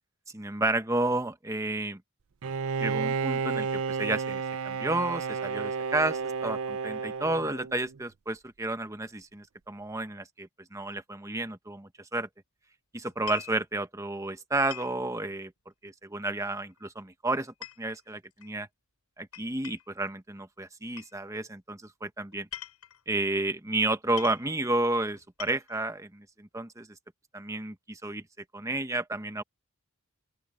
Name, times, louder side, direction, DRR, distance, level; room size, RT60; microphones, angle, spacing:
voice 1, 0.3-2.0 2.8-12.3 12.9-15.5 15.8-18.7 19.2-22.5 23.1-26.9 27.3-28.2 28.5-29.4, right 2 dB, 15° right, 1.1 m, -31 dB
Bowed string instrument, 2.4-8.0, right 5 dB, 65° right, 0.5 m, -32 dB
sound 1, 13.1-13.6 14.7-15.0 16.4-16.8 17.3-18.5 19.3-20.0 21.0-21.1 22.3-23.0 23.8-23.9 24.2-24.5 25.2-25.8, left 12 dB, 90° left, 7.9 m, -44 dB
open air
head